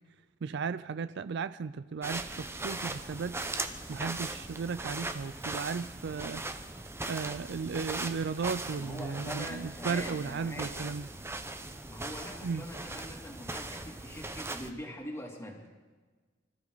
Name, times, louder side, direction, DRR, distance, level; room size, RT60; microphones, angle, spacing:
voice 1, 0.4-3.3 3.9-6.4 7.1-11.1 12.4-12.6, right 5 dB, 65° right, 0.4 m, -35 dB
sound 1, 2.0-14.7, right 2 dB, 15° right, 0.9 m, -39 dB
voice 2, 8.8-10.8 11.9-15.7, equal, 15° left, 2.7 m, -43 dB
25.5 x 14.0 x 4.0 m
head